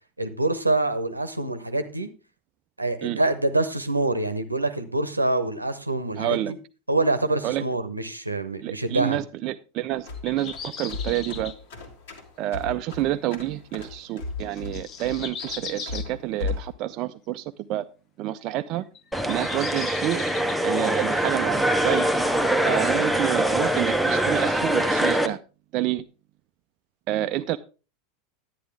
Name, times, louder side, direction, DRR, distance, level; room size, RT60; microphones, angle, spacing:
voice 1, 0.2-2.1 2.8-6.4 6.9-9.2, right 2 dB, 85° right, 10 dB, 0.8 m, -25 dB
voice 2, 6.2-6.5 7.4-7.6 8.6-11.5 12.4-17.9 18.2-18.8 19.3-20.2 20.6-22.1 22.6-25.4 25.7-26.0 27.1-27.6, right 14 dB, 45° right, 9 dB, 0.4 m, -28 dB
sound 1, 9.9-16.7, left 4 dB, 60° left, 2.0 m, -36 dB
sound 2, 10.2-11.6 13.8-14.0 14.4-16.1 18.6-20.6, left 7 dB, 35° left, 0.8 m, -38 dB
sound 3, 19.1-25.3, right 1 dB, ahead, 0.9 m, -23 dB
10.5 x 9.9 x 3.4 m, 0.33 s
figure-of-eight pair, 80°, 0 cm